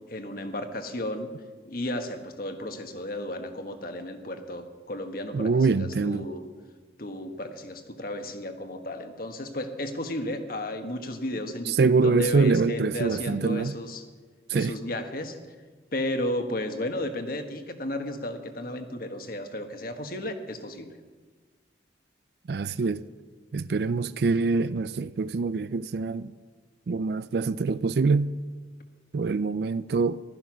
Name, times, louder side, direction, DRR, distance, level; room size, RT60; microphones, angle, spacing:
voice 1, 0.1-1.3 1.6-6.5 7.0-14.0 14.5-15.4 15.9-20.9, left 1 dB, 50° left, 1.4 m, -33 dB
voice 2, 5.3-6.2 11.7-13.8 14.5-14.7 22.5-23.0 23.5-26.3 26.9-28.3 29.1-30.2, right 4 dB, 60° right, 0.4 m, -25 dB
15.5 x 13.0 x 6.2 m
head